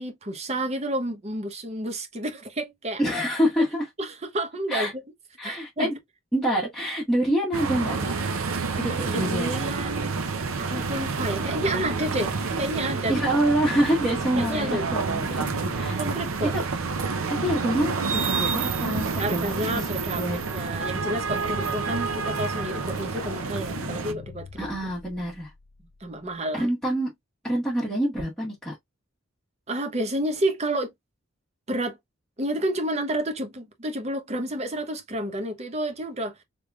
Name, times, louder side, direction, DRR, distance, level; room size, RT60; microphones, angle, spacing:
voice 1, 0.0-3.0 4.0-4.9 5.4-5.9 8.7-10.2 10.6-12.3 12.6-13.3 14.4-14.8 15.9-16.5 19.2-24.7 26.0-26.7 29.7-30.9 31.7-32.0 32.4-36.3, right 1 dB, 30° right, 0.9 m, -30 dB
voice 2, 3.0-3.9 4.7-4.9 5.4-5.9 6.3-8.1 8.8-9.6 13.1-15.4 15.8-16.2 16.4-16.6 17.3-19.9 20.2-20.4 24.6-25.5 26.5-27.1 27.4-28.7, right 1 dB, ahead, 1.4 m, -26 dB
sound 1, 7.5-24.1, right 4 dB, 85° right, 0.7 m, -28 dB
sound 2, 10.6-26.4, left 4 dB, 70° left, 0.7 m, -45 dB
3.4 x 3.4 x 2.3 m
head